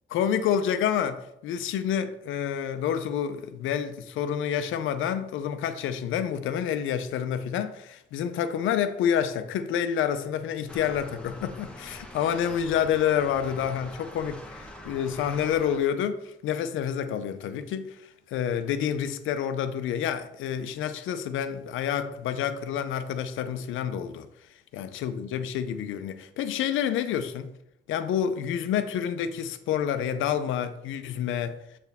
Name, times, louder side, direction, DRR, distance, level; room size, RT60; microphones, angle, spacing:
voice 1, 0.1-18.0 18.3-24.3 24.7-27.5 27.9-31.6, left 9 dB, 85° left, 0.6 m, -28 dB
sound 1, 10.7-15.8, left 1 dB, 5° left, 1.0 m, -44 dB
7.0 x 4.6 x 3.5 m
cardioid pair, 90°, 20 cm